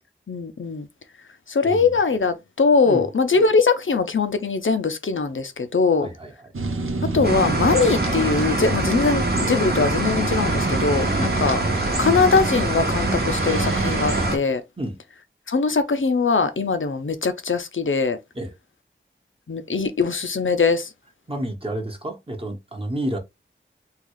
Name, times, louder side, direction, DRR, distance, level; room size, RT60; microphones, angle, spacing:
voice 1, 0.3-0.9 1.5-6.1 7.1-11.6 12.0-14.6 15.5-18.2 19.5-20.9, left 4 dB, 75° left, 0.6 m, -21 dB
voice 2, 6.0-6.5 11.1-11.4 14.8-15.0 18.3-18.5 21.3-23.2, right 1 dB, 25° right, 1.0 m, -30 dB
sound 1, 6.5-14.3, right 2 dB, 85° right, 0.7 m, -27 dB
sound 2, 7.2-14.4, right 2 dB, 50° right, 1.0 m, -25 dB
3.8 x 2.3 x 3.1 m
wide cardioid pair, 45°, 21 cm